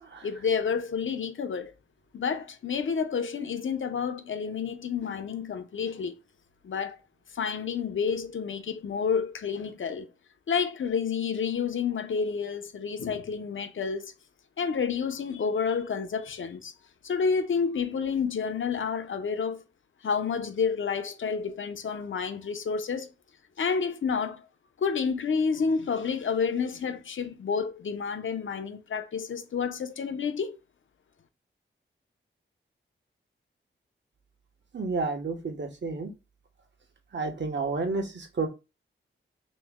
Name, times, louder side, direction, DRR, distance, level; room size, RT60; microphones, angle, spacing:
voice 1, 0.2-1.7 2.1-6.2 6.6-7.0 7.3-10.1 10.5-14.1 14.6-16.7 17.0-19.6 20.0-23.1 23.6-24.4 24.8-30.6, left 6 dB, 70° left, 0.7 m, -29 dB
voice 2, 34.7-36.1 37.1-38.5, right 3 dB, 60° right, 1.1 m, -31 dB
3.1 x 3.0 x 3.6 m
wide cardioid pair, 75°, 21 cm